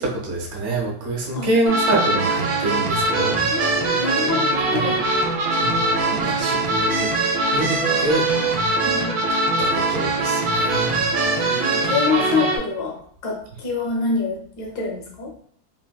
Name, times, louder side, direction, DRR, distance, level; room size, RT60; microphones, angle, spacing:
voice 1, 0.0-3.4 4.7-4.9 5.5-8.6 9.6-11.1, right 2 dB, 55° right, -2 dB, 1.1 m, -26 dB
sound 1, 1.7-12.6, right 2 dB, 80° right, 1.4 m, -22 dB
voice 2, 3.4-5.0 8.8-9.1 11.3-15.3, left 4 dB, 65° left, 0 dB, 1.3 m, -26 dB
3.5 x 2.5 x 2.2 m, 0.63 s
omnidirectional pair, 2.1 m